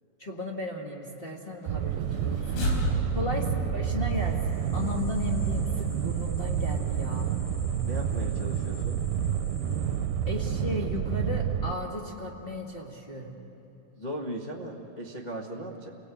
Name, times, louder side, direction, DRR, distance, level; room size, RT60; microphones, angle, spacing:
voice 1, 0.2-2.7 3.1-7.3 10.3-13.4, left 2 dB, 25° left, -1 dB, 1.1 m, -35 dB
sound 1, 1.7-11.8, right 9 dB, 75° right, 2.2 m, -29 dB
sound 2, 1.9-7.2, left 2 dB, 85° left, 5.4 m, -36 dB
voice 2, 2.9-3.2 7.8-9.0 14.0-15.9, equal, 70° left, -3 dB, 0.4 m, -38 dB
sound 3, 4.0-10.6, left 1 dB, 5° right, 2.1 m, -51 dB
29.5 x 18.5 x 8.5 m, 3.0 s
omnidirectional pair, 4.1 m